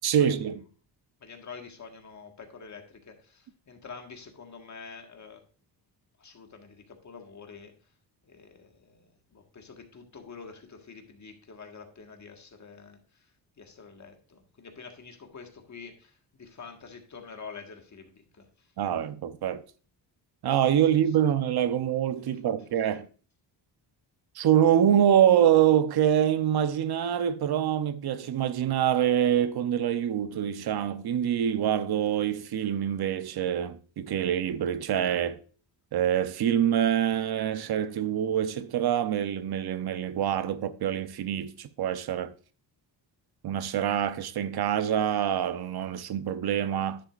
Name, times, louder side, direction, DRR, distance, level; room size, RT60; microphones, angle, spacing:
voice 1, 0.0-0.6 18.8-19.6 20.4-23.1 24.3-35.4 35.9-42.3 43.4-47.0, right 10 dB, 60° right, 0.8 m, -25 dB
voice 2, 1.2-5.4 6.2-7.7 8.2-13.3 13.6-18.7, left 5 dB, 40° left, 1.7 m, -47 dB
10.0 x 7.6 x 2.5 m
cardioid pair, 110°, 44 cm